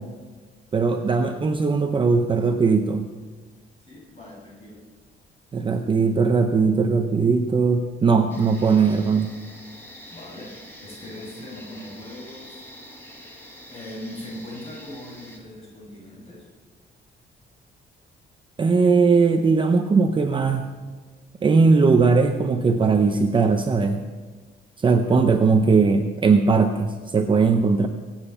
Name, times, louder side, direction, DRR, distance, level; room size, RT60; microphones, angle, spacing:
voice 1, 0.7-3.1 5.5-9.3 18.6-20.6 21.4-24.0 24.8-27.9, right 4 dB, 25° right, 5 dB, 0.7 m, -19 dB
voice 2, 3.8-4.8 10.1-12.6 13.7-16.5, left 1 dB, 30° left, -4 dB, 6.4 m, -40 dB
sound 1, 8.3-15.4, equal, 10° left, 1.9 m, -45 dB
22.5 x 9.1 x 5.6 m, 1.4 s
cardioid pair, 175°, 21 cm